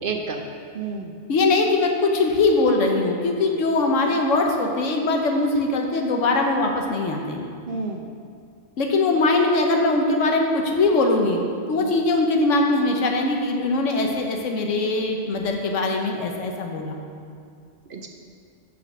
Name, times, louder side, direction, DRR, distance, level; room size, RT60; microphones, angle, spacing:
voice 1, 0.0-0.5 0.7-1.2 4.0-4.1 7.7-8.2 11.8-11.9 17.9-18.1, right 4 dB, 55° right, 3 dB, 0.7 m, -31 dB
voice 2, 1.3-7.4 8.8-11.4 11.7-16.9, left 2 dB, 85° left, 2 dB, 1.2 m, -21 dB
6.5 x 5.8 x 6.2 m, 2.3 s
omnidirectional pair, 1.3 m